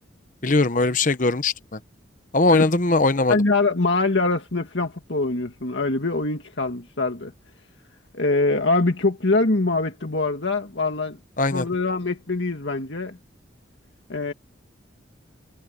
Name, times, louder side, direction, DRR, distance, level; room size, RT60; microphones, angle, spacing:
voice 1, 0.4-1.8 2.3-3.4 11.4-11.7, left 2 dB, 40° left, 1.0 m, -20 dB
voice 2, 3.3-7.3 8.1-11.2 11.5-13.2 14.1-14.3, left 3 dB, 65° left, 1.8 m, -23 dB
head